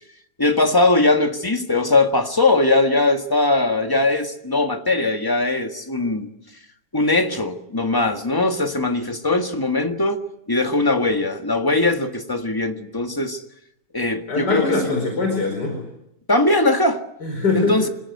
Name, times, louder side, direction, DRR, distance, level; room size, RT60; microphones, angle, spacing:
voice 1, 0.4-6.3 6.9-10.2 10.5-13.4 13.9-15.0 16.3-17.0 17.5-17.9, left 2 dB, 15° left, 5 dB, 1.6 m, -20 dB
voice 2, 14.3-15.7 17.2-17.7, left 3 dB, 85° left, 3 dB, 5.5 m, -22 dB
26.0 x 17.0 x 9.5 m, 0.82 s
omnidirectional pair, 1.8 m